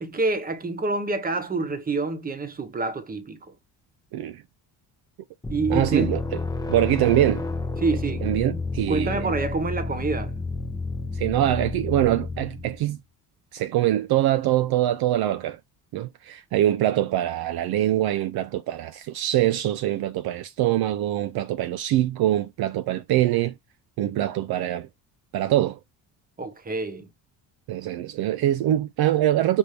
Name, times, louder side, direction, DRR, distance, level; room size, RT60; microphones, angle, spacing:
voice 1, 0.0-3.4 5.5-6.2 7.8-8.4 8.9-10.3 26.4-27.1, right 3 dB, 20° right, 0.9 m, -27 dB
sound 1, 5.4-12.9, left 3 dB, 10° left, 0.6 m, -30 dB
voice 2, 5.7-6.2 6.7-7.4 8.2-9.3 11.1-13.0 13.5-15.6 15.9-23.5 24.0-24.9 25.3-25.8 27.7-29.6, right 13 dB, 60° right, 0.5 m, -23 dB
5.3 x 2.7 x 3.2 m
cardioid pair, 105°, 42 cm